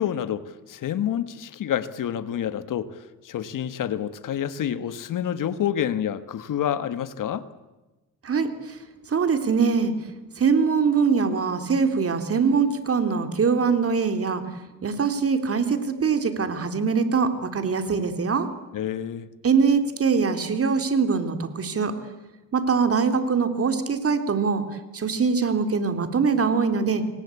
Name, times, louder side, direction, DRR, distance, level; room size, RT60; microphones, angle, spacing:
voice 1, 0.0-7.5 18.7-19.3, left 10 dB, 65° left, 13 dB, 1.6 m, -28 dB
voice 2, 8.2-8.8 9.1-10.0 10.4-14.4 14.8-18.5 19.4-22.0 22.5-24.6 24.9-27.1, right 5 dB, 40° right, 8 dB, 3.3 m, -23 dB
27.5 x 24.0 x 8.4 m, 1.1 s
cardioid pair, 100°, 34 cm